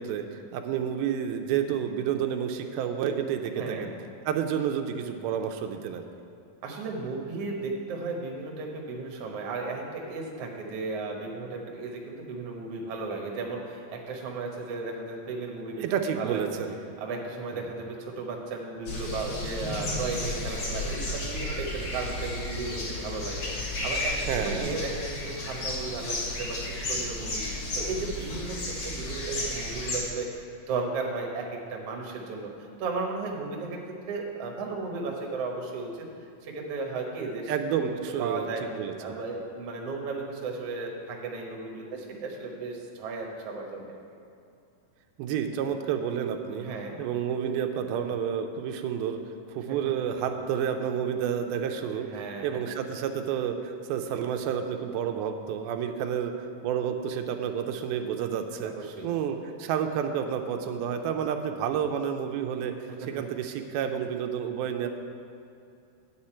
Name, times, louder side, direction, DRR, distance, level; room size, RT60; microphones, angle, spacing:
voice 1, 0.0-3.9 4.3-6.0 15.8-16.8 17.5-17.6 24.3-24.7 37.5-38.5 38.7-39.1 45.2-46.7 47.0-49.2 49.5-52.1 52.4-58.7 59.0-62.7 63.1-64.9, right 8 dB, 85° right, 5 dB, 2.5 m, -30 dB
voice 2, 3.5-3.9 6.6-16.4 17.0-27.4 27.7-28.6 28.8-32.5 32.8-36.1 36.4-37.9 38.2-38.7 39.0-44.0 46.6-47.0 49.7-49.8 52.1-52.6 58.5-59.1 63.0-63.1, right 3 dB, 65° right, 0 dB, 1.6 m, -35 dB
sound 1, 18.9-30.0, left 1 dB, 50° left, 1.9 m, -33 dB
9.5 x 8.2 x 4.3 m, 2.6 s
omnidirectional pair, 4.2 m